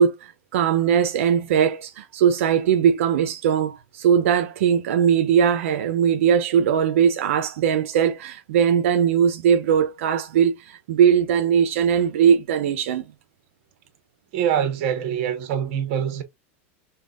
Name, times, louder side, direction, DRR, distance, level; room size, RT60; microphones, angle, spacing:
voice 1, 0.0-13.0, right 8 dB, 85° right, 0.6 m, -20 dB
voice 2, 14.3-16.2, right 9 dB, 45° right, 1.1 m, -24 dB
5.2 x 2.3 x 2.4 m
supercardioid pair, 175°, 7 cm